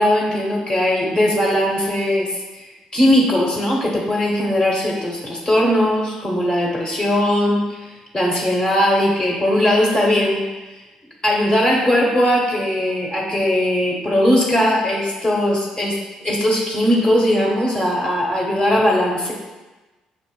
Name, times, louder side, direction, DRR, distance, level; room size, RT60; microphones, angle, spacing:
voice 1, 0.0-7.8 8.1-10.4 11.2-16.0 16.2-19.3, left 1 dB, 30° left, -3 dB, 1.3 m, -19 dB
6.3 x 2.3 x 2.3 m, 1.2 s
figure-of-eight pair, 45°, 3 cm